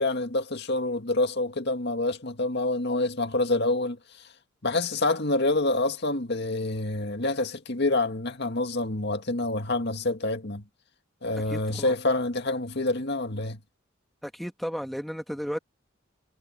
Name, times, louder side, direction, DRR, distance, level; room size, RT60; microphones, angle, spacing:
voice 1, 0.0-4.0 4.6-10.6 11.2-13.6, left 2 dB, 60° left, 2.0 m, -27 dB
voice 2, 11.5-11.9 14.2-15.6, equal, ahead, 2.0 m, -34 dB
head